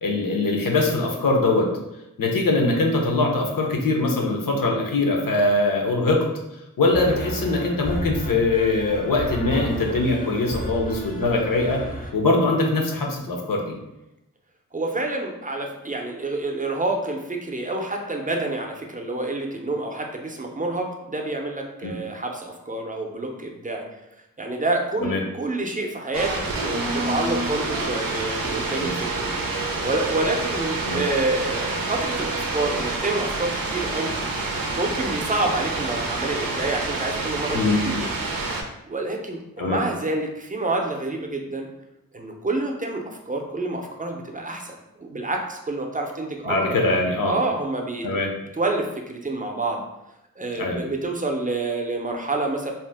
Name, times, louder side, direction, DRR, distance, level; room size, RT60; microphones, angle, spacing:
voice 1, 0.0-1.7 2.2-6.2 6.8-11.8 12.1-13.7 21.8-21.9 25.0-25.2 28.8-29.0 30.8-31.0 37.5-37.8 39.6-39.8 46.5-47.3 48.0-48.3 50.6-50.8, left 2 dB, 75° left, 1 dB, 0.7 m, -22 dB
sound 1, 6.9-12.1, equal, 25° left, 0.5 m, -33 dB
voice 2, 14.7-23.8 24.4-29.3 29.8-34.2 34.8-38.1 38.9-41.7 42.1-46.8 47.2-48.1 48.5-49.8 50.4-52.7, right 2 dB, 25° right, 2 dB, 0.5 m, -28 dB
sound 2, 26.1-38.6, right 3 dB, 90° right, 0.5 m, -27 dB
2.8 x 2.1 x 3.3 m, 0.91 s
cardioid pair, 55°, 34 cm